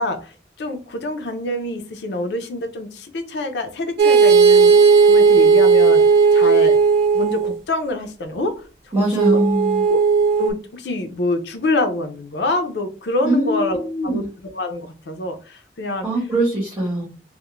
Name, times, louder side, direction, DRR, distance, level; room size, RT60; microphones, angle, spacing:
voice 1, 0.0-6.0 6.3-6.8 7.1-9.4 9.9-10.0 10.4-14.2 14.5-16.1, left 2 dB, 80° left, 7 dB, 0.5 m, -26 dB
sound 1, 4.0-7.6 9.2-10.5, right 5 dB, 65° right, 0.4 m, -14 dB
voice 2, 8.9-9.8 13.2-14.2 16.0-17.0, right 1 dB, 20° right, -8 dB, 1.1 m, -22 dB
2.3 x 2.0 x 2.9 m, 0.36 s
head